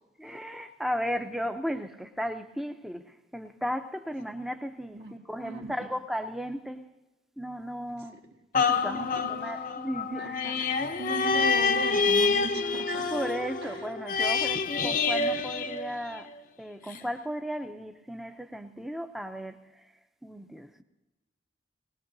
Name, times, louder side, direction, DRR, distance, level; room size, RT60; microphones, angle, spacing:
voice 1, 0.2-6.8 7.4-8.2 8.7-10.3 13.1-16.3 16.6-19.6 20.2-20.8, equal, ahead, 0.5 m, -35 dB
voice 2, 5.4-5.9 8.9-9.1 9.4-9.7 10.1-10.5 11.0-13.2 13.6-13.9, right 2 dB, 65° right, 2.0 m, -38 dB
sound 1, 8.5-16.4 16.9-17.0, left 4 dB, 50° left, 0.6 m, -27 dB
20.5 x 18.5 x 2.7 m
head